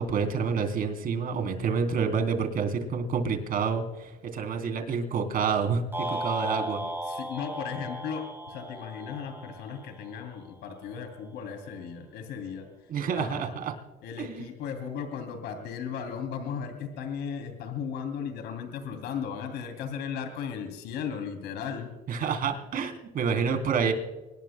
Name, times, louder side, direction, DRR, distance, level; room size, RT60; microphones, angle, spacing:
voice 1, 0.0-5.8 6.1-6.9 12.9-13.7 14.2-14.5 22.1-23.9, right 6 dB, 60° right, 4 dB, 3.4 m, -28 dB
sound 1, 5.9-10.2, equal, 15° right, 3.9 m, -36 dB
voice 2, 7.0-12.7 13.1-13.6 14.0-21.9, left 7 dB, 85° left, 6 dB, 2.9 m, -36 dB
24.5 x 19.5 x 2.2 m, 1.2 s
cardioid pair, 110°, 17 cm